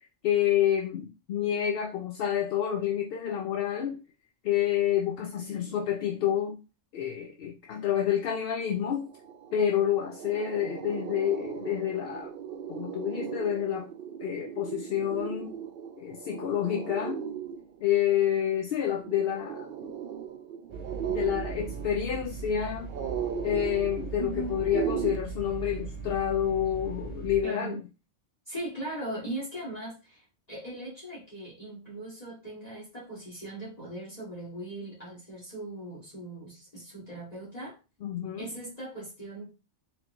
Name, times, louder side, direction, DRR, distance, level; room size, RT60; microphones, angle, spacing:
voice 1, 0.2-4.0 4.4-6.6 6.9-9.1 9.5-12.3 12.7-13.9 14.2-15.5 16.0-17.2 17.8-19.7 21.1-22.9 23.4-27.8 38.0-38.5, left 10 dB, 60° left, 0.6 m, -28 dB
sound 1, 8.6-8.7 9.0-25.2, right 8 dB, 60° right, 0.6 m, -37 dB
sound 2, 20.7-27.4, right 5 dB, 25° right, 1.1 m, -39 dB
voice 2, 24.2-24.6 27.4-27.8 28.5-37.8 38.4-39.5, right 1 dB, 30° left, 1.6 m, -39 dB
4.3 x 3.8 x 2.6 m
omnidirectional pair, 1.3 m